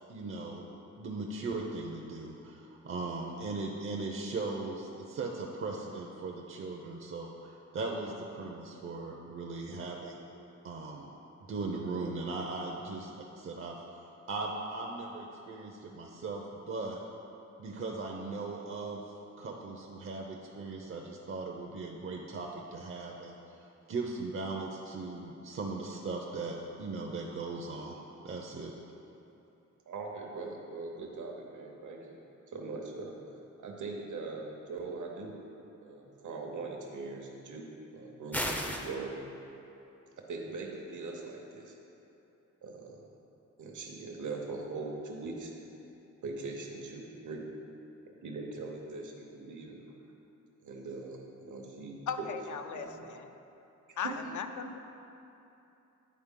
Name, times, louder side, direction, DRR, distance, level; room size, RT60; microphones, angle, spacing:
voice 1, 0.1-0.7 1.0-10.2 10.6-11.1 11.5-13.1 13.4-13.8 14.3-17.0 17.6-19.0 19.4-23.4 23.9-28.0 28.2-28.7, right 3 dB, 45° right, 0 dB, 0.5 m, -38 dB
voice 2, 29.9-32.2 32.5-33.2 33.6-35.4 35.8-37.6 37.9-39.1 40.2-41.7 42.6-43.1 43.6-45.5 46.2-47.5 48.2-49.8 50.6-52.3 52.7-53.1 54.0-54.3, right 3 dB, 75° right, 0 dB, 0.9 m, -41 dB
sound 1, 38.3-38.9, equal, 5° left, 0.4 m, -33 dB
voice 3, 52.1-53.1 54.0-54.8, left 6 dB, 75° left, 7 dB, 0.5 m, -37 dB
9.4 x 4.2 x 3.7 m, 2.9 s
wide cardioid pair, 110°, 30 cm